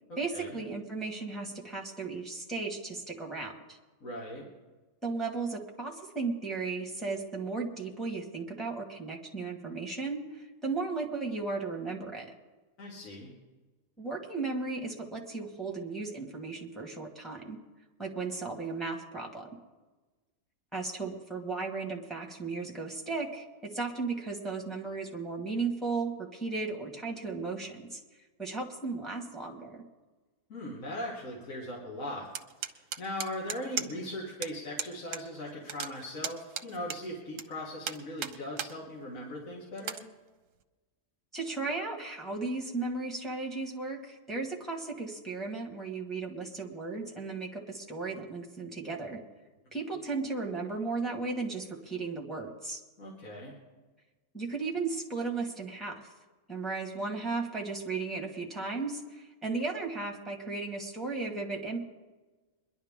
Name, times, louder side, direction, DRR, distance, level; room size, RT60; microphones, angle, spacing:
voice 1, 0.2-3.8 5.0-12.3 14.0-17.6 18.0-19.5 20.7-28.0 28.4-29.8 41.3-49.2 49.7-52.8 54.3-56.1 56.5-61.8, right 3 dB, ahead, 0 dB, 1.6 m, -35 dB
voice 2, 4.0-4.5 12.8-13.3 30.5-32.3 32.6-40.0 53.0-53.5, left 1 dB, 60° left, -4 dB, 2.4 m, -39 dB
sound 1, 32.3-34.1 34.4-34.5 34.8-35.2 35.5-37.4 37.8-38.7 39.2-39.3 39.8-40.0, right 8 dB, 60° right, 1.0 m, -36 dB
22.5 x 11.0 x 3.7 m, 1.2 s
omnidirectional pair, 1.6 m